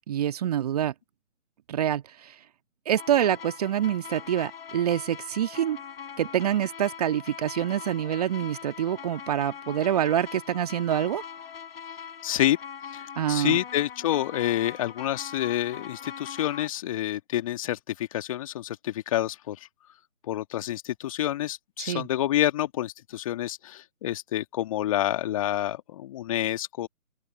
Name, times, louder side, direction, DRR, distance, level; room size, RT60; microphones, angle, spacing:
voice 1, 0.1-0.9 1.7-2.4 2.9-5.8 6.2-11.2 13.2-13.6 21.8-22.1, right 10 dB, 30° right, 1.8 m, -26 dB
sound 1, 3.0-16.7, left 7 dB, 45° left, 5.9 m, -42 dB
voice 2, 12.2-12.6 12.9-19.6 20.3-26.9, left 13 dB, 25° left, 2.1 m, -28 dB
open air
figure-of-eight pair, 150°, 42 cm